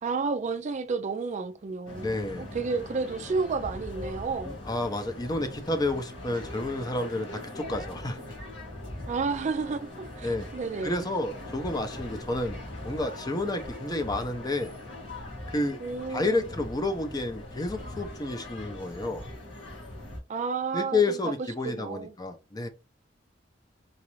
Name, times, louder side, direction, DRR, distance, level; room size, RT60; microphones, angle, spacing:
voice 1, 0.0-4.6 9.1-11.1 15.8-16.4 20.3-21.2 21.6-22.1, right 4 dB, 40° right, 0.4 m, -31 dB
sound 1, 1.9-20.2, left 1 dB, 85° left, 2.0 m, -41 dB
voice 2, 2.0-2.5 4.4-8.3 10.2-10.5 10.8-12.6 12.8-14.7 15.5-15.8 16.1-19.2 20.7-22.7, left 2 dB, 20° left, 0.6 m, -30 dB
4.0 x 2.4 x 3.0 m
head